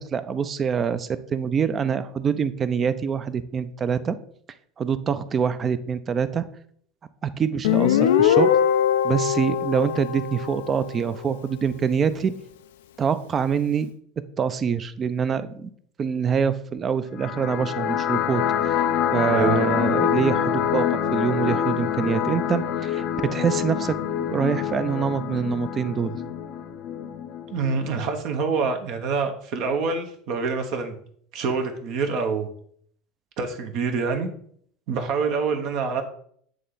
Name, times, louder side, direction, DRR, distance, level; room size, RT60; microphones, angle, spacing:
voice 1, 0.0-4.1 4.8-6.4 7.2-8.5 9.0-12.3 13.0-13.9 14.4-15.7 16.0-18.8 19.1-23.0 23.3-26.2, right 7 dB, 35° right, 13 dB, 0.5 m, -25 dB
Guitar, 7.6-11.1, left 9 dB, 85° left, 0.3 m, -21 dB
sound 1, 17.1-28.1, left 9 dB, 60° left, 0.7 m, -26 dB
voice 2, 27.5-30.9 31.3-32.5 33.4-34.3 34.9-36.0, right 5 dB, 60° right, 5 dB, 1.0 m, -26 dB
7.7 x 3.3 x 3.9 m, 0.62 s
hypercardioid pair, 90°, 0 cm